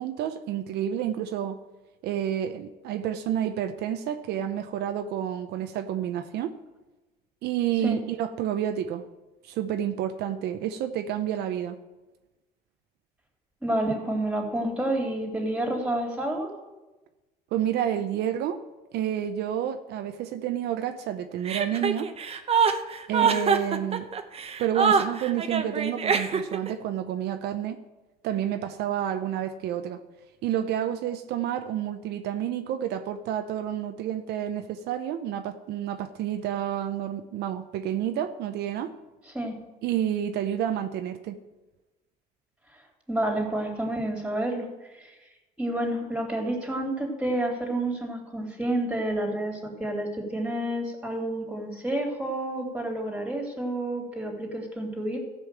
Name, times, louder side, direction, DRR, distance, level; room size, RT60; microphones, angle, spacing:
voice 1, 0.0-1.6 2.0-6.5 7.4-9.0 9.4-11.8 17.5-18.6 18.9-22.1 23.1-24.1 24.6-27.8 28.2-30.0 30.4-38.9 39.8-41.4, right 10 dB, 80° right, 8 dB, 0.8 m, -29 dB
voice 2, 13.6-16.5 23.2-23.4 39.3-39.6 43.1-44.7 45.6-55.2, right 1 dB, 5° right, 1 dB, 3.1 m, -29 dB
Chuckle chortle, 21.4-26.7, right 6 dB, 35° right, 0.9 m, -24 dB
14.5 x 5.5 x 7.6 m, 1.1 s
cardioid pair, 110°, 17 cm